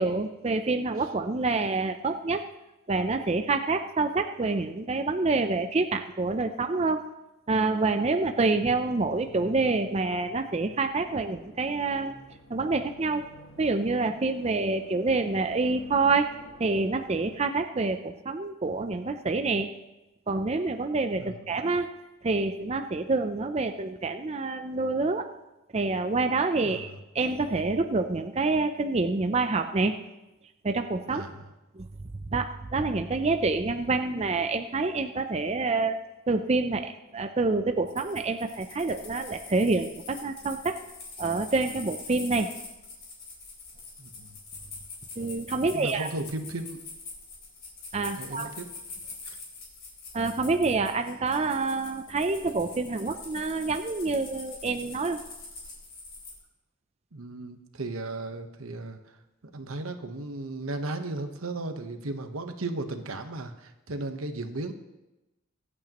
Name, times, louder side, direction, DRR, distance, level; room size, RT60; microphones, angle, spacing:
voice 1, 0.0-2.4 2.9-7.1 7.5-12.2 12.5-13.2 13.6-19.7 20.3-21.9 22.2-25.3 25.7-26.9 27.1-29.9 30.6-31.2 31.8-31.9 32.3-36.0 36.3-40.8 41.2-42.5 45.2-46.1 47.9-48.5 50.1-55.2, right 3 dB, 30° right, 7 dB, 0.5 m, -27 dB
sound 1, 7.5-17.5, left 2 dB, 65° left, 1.2 m, -51 dB
voice 2, 26.6-27.0 31.1-31.4 44.0-44.4 45.7-46.8 48.1-48.7 49.3-49.4 57.1-59.2 59.5-64.7, right 2 dB, 90° right, 7 dB, 1.1 m, -35 dB
sound 2, 37.9-56.4, left 3 dB, 50° left, 4.2 m, -44 dB
24.0 x 8.6 x 3.0 m, 1.0 s
head